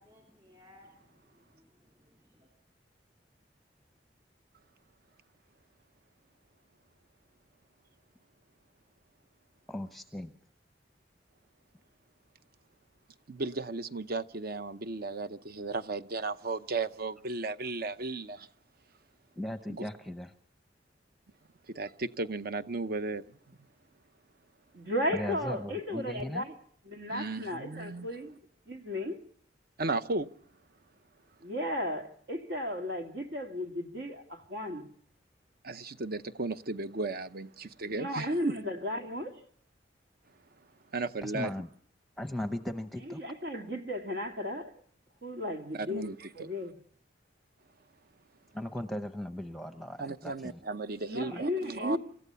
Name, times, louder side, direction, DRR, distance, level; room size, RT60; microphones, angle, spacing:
voice 1, 0.0-2.5, left 1 dB, 30° right, 3.1 m, -61 dB
voice 2, 9.7-10.3 19.4-20.3 25.1-26.4 41.2-41.7 42.2-43.2 48.5-50.6 51.3-51.4, left 1 dB, ahead, 0.8 m, -38 dB
voice 3, 13.3-18.5 19.7-19.9 21.7-23.2 27.1-28.1 29.8-30.3 35.6-38.5 40.9-41.5 45.7-46.5 50.0-52.0, right 3 dB, 60° right, 0.8 m, -35 dB
voice 4, 24.7-26.6 26.9-28.4 28.7-29.2 31.4-34.9 37.8-39.3 43.1-44.7 45.2-46.8 51.0-52.0, left 1 dB, 80° right, 2.5 m, -35 dB
27.5 x 14.5 x 6.9 m
head